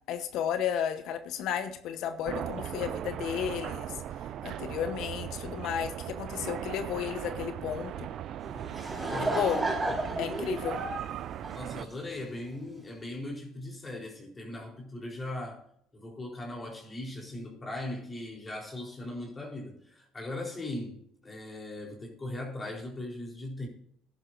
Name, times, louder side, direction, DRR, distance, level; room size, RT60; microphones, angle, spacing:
voice 1, 0.0-4.0 4.4-8.1 9.2-9.6 10.2-10.8, left 9 dB, 70° left, 1.0 m, -33 dB
sound 1, 2.2-11.9, right 11 dB, 60° right, 0.5 m, -38 dB
Laughter / Crowd, 8.4-12.2, right 2 dB, 20° right, 4.4 m, -33 dB
voice 2, 9.1-9.5 11.5-15.6 15.9-23.7, left 1 dB, 25° left, 4.0 m, -39 dB
14.5 x 11.0 x 2.6 m
supercardioid pair, 75°, 0 cm